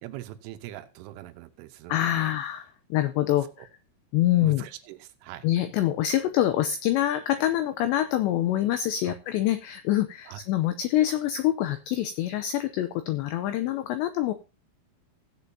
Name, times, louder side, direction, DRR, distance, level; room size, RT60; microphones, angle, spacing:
voice 1, 0.0-2.3 3.6-3.7 4.4-5.5 9.0-9.2 10.3-10.4, right 13 dB, 80° right, 9 dB, 3.2 m, -42 dB
voice 2, 1.9-3.7 4.1-4.6 5.4-14.3, left 13 dB, 90° left, 10 dB, 2.5 m, -25 dB
16.5 x 8.4 x 2.8 m, 0.31 s
omnidirectional pair, 5.8 m